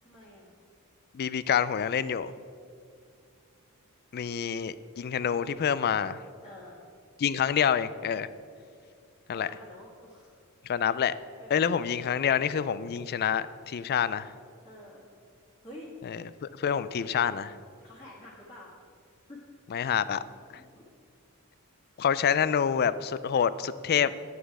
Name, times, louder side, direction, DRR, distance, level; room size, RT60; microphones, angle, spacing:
voice 1, 0.0-0.5 6.4-6.8 9.3-10.3 11.4-11.9 14.6-15.0 15.6-15.9 17.8-18.7 19.3-19.4 20.7-20.8, left 1 dB, 20° left, -9 dB, 1.6 m, -48 dB
voice 2, 1.1-2.3 4.1-6.2 7.2-8.3 9.3-9.5 10.7-11.1 11.5-14.3 16.1-17.5 19.7-20.2 22.0-24.1, left 8 dB, 45° left, 15 dB, 0.3 m, -27 dB
10.0 x 8.2 x 4.8 m, 2.3 s
head